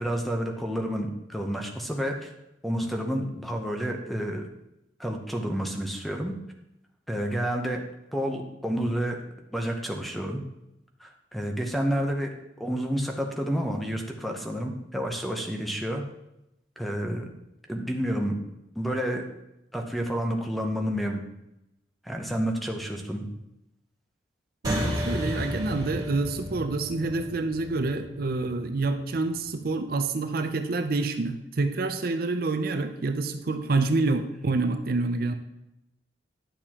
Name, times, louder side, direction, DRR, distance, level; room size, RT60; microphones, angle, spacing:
voice 1, 0.0-2.3 2.6-4.4 5.0-6.3 7.1-7.8 8.1-9.2 9.5-10.4 11.0-16.0 16.8-17.3 17.7-18.4 18.8-19.2 19.7-21.2 22.0-23.3, equal, ahead, 3 dB, 0.8 m, -29 dB
sound 1, 24.6-29.5, equal, 20° right, 2.3 m, -33 dB
voice 2, 24.6-35.3, right 3 dB, 55° right, 7 dB, 0.5 m, -27 dB
10.0 x 6.8 x 2.9 m, 0.88 s
head